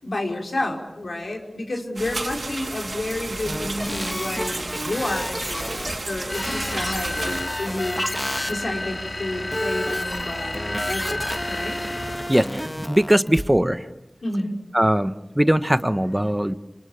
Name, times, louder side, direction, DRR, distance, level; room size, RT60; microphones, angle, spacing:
voice 1, 0.0-5.8 6.0-8.1 8.5-11.8 14.2-14.5, left 1 dB, 85° left, 2 dB, 5.0 m, -30 dB
sound 1, 2.0-7.4, right 2 dB, 65° right, 3.2 m, -32 dB
sound 2, 3.5-8.5 9.5-13.4, equal, 5° left, 2.3 m, -31 dB
Striker Far, 6.3-12.5, left 2 dB, 55° left, 2.5 m, -31 dB
voice 2, 12.3-13.9 14.7-16.5, right 1 dB, 15° right, 12 dB, 1.3 m, -20 dB
28.0 x 27.5 x 7.3 m, 0.93 s
wide cardioid pair, 55°, 0 cm